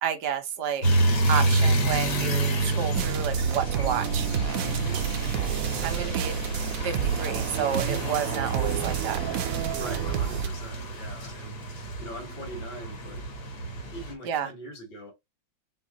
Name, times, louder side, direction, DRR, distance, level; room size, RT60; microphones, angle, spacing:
voice 1, 0.0-4.3 5.8-6.3 6.8-9.2 14.2-14.5, right 8 dB, 65° right, 1.2 m, -31 dB
sound 1, 0.8-14.1, right 2 dB, 55° left, 1.8 m, -28 dB
sound 2, 2.9-10.5, right 11 dB, 85° right, 0.7 m, -30 dB
voice 2, 4.6-5.1 5.8-6.5 9.6-11.6 12.0-13.3 13.9-15.1, right 1 dB, 75° left, 2.9 m, -42 dB
4.6 x 2.5 x 3.8 m
omnidirectional pair, 2.1 m